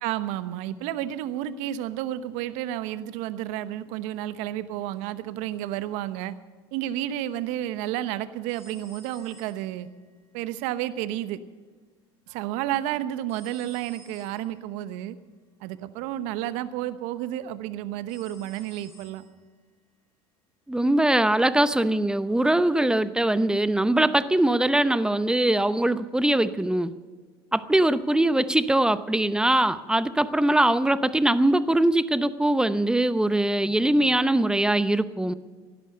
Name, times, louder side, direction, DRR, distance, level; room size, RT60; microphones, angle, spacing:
voice 1, 0.0-6.3 6.7-9.9 10.3-11.4 12.3-15.2 15.6-19.2 33.7-34.1, right 13 dB, 65° right, 13 dB, 1.0 m, -31 dB
sound 1, 8.5-10.1 13.3-14.6 18.1-19.4, right 1 dB, 20° left, 6.6 m, -53 dB
voice 2, 20.7-26.9 27.5-35.3, right 1 dB, 5° right, 14 dB, 0.7 m, -22 dB
17.0 x 12.0 x 6.7 m, 1.4 s
hypercardioid pair, 80°, 13 cm